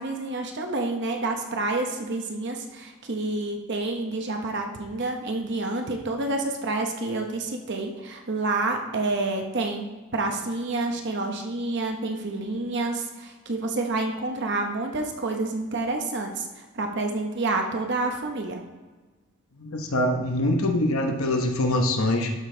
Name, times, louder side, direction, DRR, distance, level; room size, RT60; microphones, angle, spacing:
voice 1, 0.0-9.9 10.1-18.6, right 2 dB, 50° right, 3 dB, 0.9 m, -28 dB
voice 2, 19.6-22.3, left 1 dB, 70° left, 4 dB, 0.9 m, -24 dB
12.0 x 5.1 x 3.8 m, 1.3 s
head